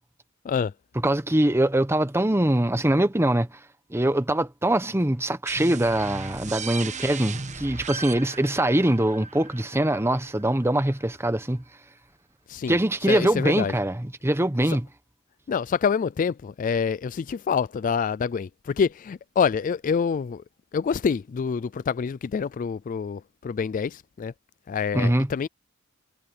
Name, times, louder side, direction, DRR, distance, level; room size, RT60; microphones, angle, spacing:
voice 1, 1.0-3.5 3.9-11.6 12.7-14.9 24.9-25.3, right 1 dB, 10° right, 1.0 m, -23 dB
sound 1, 5.5-10.9, right 5 dB, 35° right, 1.1 m, -37 dB
voice 2, 13.1-13.7 14.7-14.8 15.5-20.4 20.7-24.3 24.7-25.5, left 6 dB, 40° left, 0.3 m, -26 dB
head